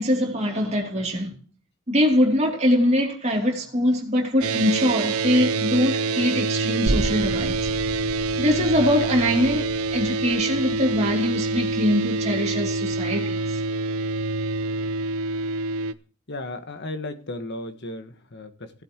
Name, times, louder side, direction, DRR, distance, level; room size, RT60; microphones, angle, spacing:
voice 1, 0.0-1.3 1.9-7.7 8.4-13.6, equal, 30° right, 2.9 m, -23 dB
sound 1, 4.4-15.9, right 3 dB, 85° right, 0.7 m, -26 dB
sound 2, 6.9-14.1 14.5-14.6, right 1 dB, 60° right, 1.1 m, -34 dB
voice 2, 16.3-18.7, left 2 dB, 50° left, 1.4 m, -35 dB
17.5 x 8.5 x 3.0 m
head